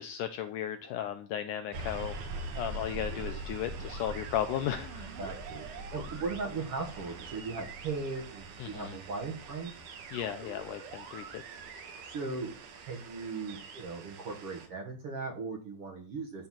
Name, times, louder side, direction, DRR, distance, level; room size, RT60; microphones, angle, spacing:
voice 1, 0.0-2.2 2.6-5.1 8.6-9.0 10.1-11.4, left 10 dB, 80° left, 8 dB, 1.9 m, -35 dB
sound 1, 1.7-14.7, right 3 dB, 80° right, 3.4 m, -43 dB
voice 2, 5.2-9.7 11.8-12.5 12.9-16.5, right 4 dB, 55° right, 1 dB, 1.8 m, -38 dB
12.0 x 4.3 x 7.4 m, 0.41 s
omnidirectional pair, 4.2 m